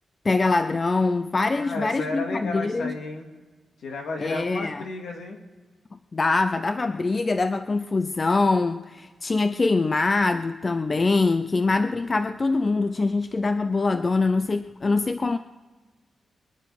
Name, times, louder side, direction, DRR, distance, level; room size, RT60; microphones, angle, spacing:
voice 1, 0.2-2.9 4.2-4.8 5.9-15.4, left 3 dB, 25° left, 10 dB, 0.4 m, -24 dB
voice 2, 1.6-3.3 3.8-5.4, left 2 dB, 85° left, 2 dB, 2.4 m, -33 dB
24.0 x 10.5 x 4.9 m, 1.3 s
wide cardioid pair, 170°, 0 cm